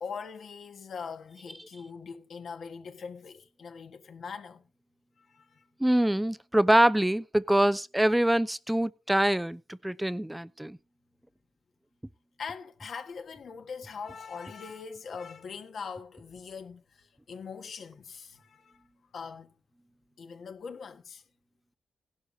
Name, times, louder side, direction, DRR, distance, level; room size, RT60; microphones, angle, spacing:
voice 1, 0.0-4.7 5.2-5.7 12.4-18.8 19.1-19.5 20.2-21.2, left 5 dB, 65° left, 1.6 m, -42 dB
voice 2, 5.8-10.8, right 1 dB, 5° right, 0.6 m, -24 dB
17.0 x 11.5 x 2.8 m
cardioid pair, 85°, 0 cm